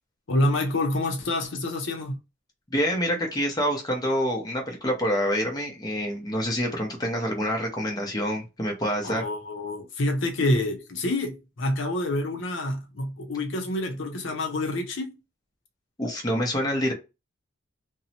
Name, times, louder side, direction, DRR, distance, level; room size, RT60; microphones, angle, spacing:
voice 1, 0.3-2.2 9.0-15.2, left 1 dB, 65° left, 0.6 m, -27 dB
voice 2, 2.7-9.3 16.0-16.9, equal, 20° left, 0.7 m, -27 dB
2.7 x 2.0 x 2.7 m
head